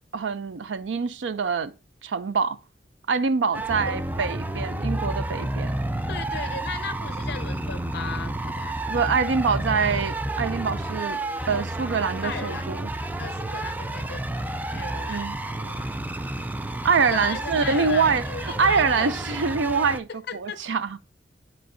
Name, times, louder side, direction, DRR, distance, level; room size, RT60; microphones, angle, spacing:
voice 1, 0.1-1.7 2.0-2.6 3.1-5.8 8.9-11.2 11.5-12.9 15.1-15.4 16.8-21.0, right 5 dB, 80° right, 0.5 m, -25 dB
sound 1, 3.5-20.0, right 1 dB, 10° right, 0.3 m, -30 dB
voice 2, 6.1-8.7 12.2-12.7 13.2-16.0 17.0-19.4 20.3-20.6, left 5 dB, 65° left, 0.7 m, -36 dB
12.0 x 4.5 x 2.6 m
head